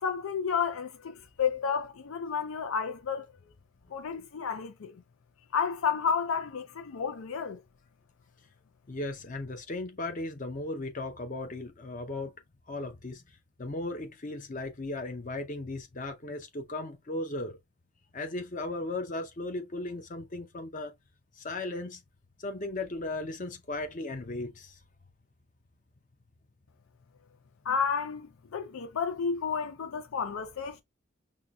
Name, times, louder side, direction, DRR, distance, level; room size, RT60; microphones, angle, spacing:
voice 1, 0.0-3.3 3.9-4.9 5.5-7.6 27.7-30.8, left 6 dB, 85° left, 0.5 m, -31 dB
voice 2, 8.9-12.3 12.7-13.2 13.6-17.6 18.1-20.9 21.4-22.0 22.4-24.8, left 2 dB, 40° left, 0.6 m, -36 dB
5.5 x 2.2 x 2.3 m
head